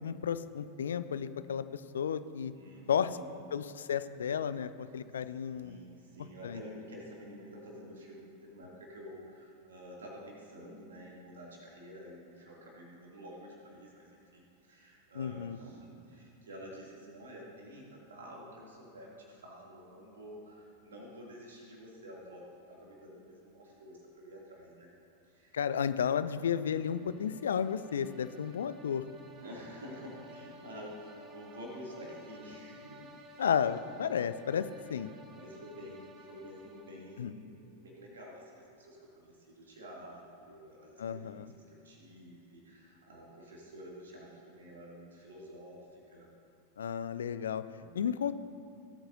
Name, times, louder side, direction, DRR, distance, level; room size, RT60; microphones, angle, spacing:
voice 1, 0.0-2.5 2.9-3.2 3.5-5.8 6.4-6.6 15.2-15.6 25.5-29.0 33.4-35.1 37.2-37.3 41.0-41.5 46.8-47.6 47.9-48.3, left 8 dB, 65° left, 14 dB, 0.4 m, -33 dB
voice 2, 2.5-3.3 5.5-24.9 25.3-25.6 29.4-33.4 35.3-46.3 47.8-48.0, equal, 65° right, -3 dB, 2.5 m, -49 dB
sound 1, 26.4-37.4, equal, 30° right, 1.0 m, -54 dB
17.5 x 8.7 x 2.7 m, 2.8 s
figure-of-eight pair, 90°, 0 cm